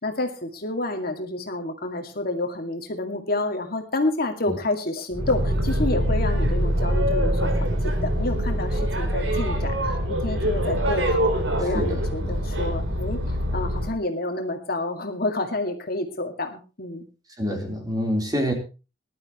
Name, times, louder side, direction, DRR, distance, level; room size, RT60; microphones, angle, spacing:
voice 1, 0.0-13.2 13.5-17.0, left 2 dB, 55° left, 4 dB, 2.3 m, -29 dB
Boat Water vehicle, 5.1-13.9, equal, 80° right, 3.9 m, -24 dB
voice 2, 11.7-12.3 17.4-18.5, equal, 20° right, 2 dB, 3.9 m, -27 dB
20.5 x 12.0 x 3.1 m, 0.32 s
head